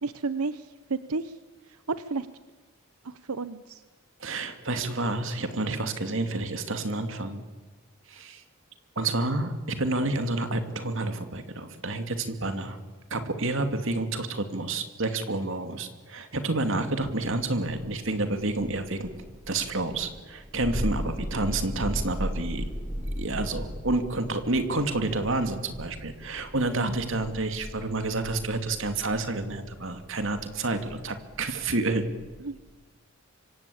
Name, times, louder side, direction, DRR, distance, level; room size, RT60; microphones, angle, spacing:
voice 1, 0.0-1.4 1.9-2.3 3.0-3.8 26.8-27.1 32.4-32.6, right 4 dB, 90° right, 13 dB, 0.9 m, -32 dB
voice 2, 4.2-7.4 8.1-8.4 9.0-12.8 13.1-19.1 19.5-22.7 23.2-32.0, right 2 dB, 60° right, 8 dB, 2.6 m, -29 dB
Thunder, 17.6-32.7, equal, 5° right, 4.0 m, -38 dB
26.0 x 25.0 x 8.7 m, 1.3 s
head